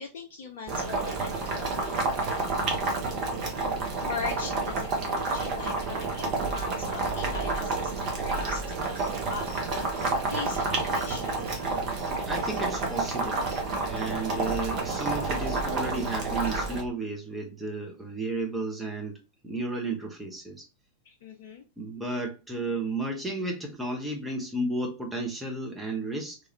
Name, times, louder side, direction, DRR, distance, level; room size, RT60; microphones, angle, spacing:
voice 1, 0.0-3.3 4.0-8.9 9.2-11.4 21.0-21.6, left 5 dB, 55° left, 0.5 m, -40 dB
Boiling, 0.7-16.8, right 3 dB, 35° right, 0.8 m, -29 dB
sound 1, 8.2-16.5, right 2 dB, 75° right, 1.1 m, -47 dB
voice 2, 12.3-13.5 13.8-20.7 21.8-26.4, right 2 dB, 10° right, 0.6 m, -33 dB
3.0 x 2.4 x 2.7 m
figure-of-eight pair, 90°, 0 cm